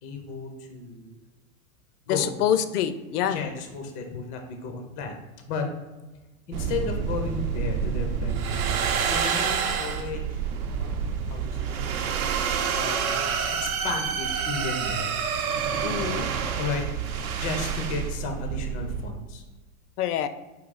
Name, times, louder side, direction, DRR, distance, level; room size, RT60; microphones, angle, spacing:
voice 1, 0.0-1.2 2.1-2.4 3.2-5.2 5.5-5.7 6.5-8.4 9.1-11.8 12.5-15.2 16.6-19.4, left 4 dB, 20° left, 4 dB, 0.4 m, -34 dB
voice 2, 2.1-3.4 4.1-4.2 15.8-16.3 20.0-20.3, left 10 dB, 85° left, 11 dB, 0.6 m, -26 dB
sound 1, 6.5-19.1, right 7 dB, 70° right, 0.7 m, -28 dB
4.7 x 2.7 x 3.9 m, 1.2 s
hypercardioid pair, 130°, 44 cm